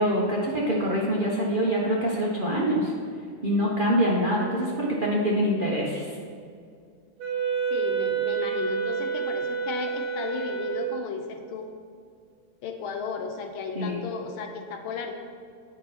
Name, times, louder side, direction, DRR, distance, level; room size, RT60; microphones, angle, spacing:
voice 1, 0.0-2.9 3.4-6.1 13.7-14.0, equal, 35° right, -5 dB, 0.9 m, -25 dB
Wind instrument woodwind instrument, 7.2-11.0, right 7 dB, 85° right, 2.4 m, -28 dB
voice 2, 7.7-11.7 12.6-15.1, left 5 dB, 75° left, 4 dB, 1.6 m, -34 dB
9.2 x 6.2 x 4.3 m, 2.2 s
omnidirectional pair, 2.3 m